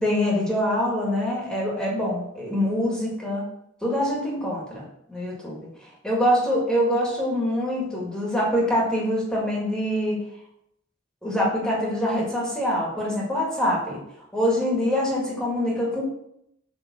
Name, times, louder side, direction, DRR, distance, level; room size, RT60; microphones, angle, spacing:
voice 1, 0.0-3.4 3.8-5.7 6.0-10.2 11.2-14.0 14.3-16.0, equal, 5° left, -4 dB, 1.7 m, -24 dB
8.0 x 3.5 x 6.1 m, 0.78 s
head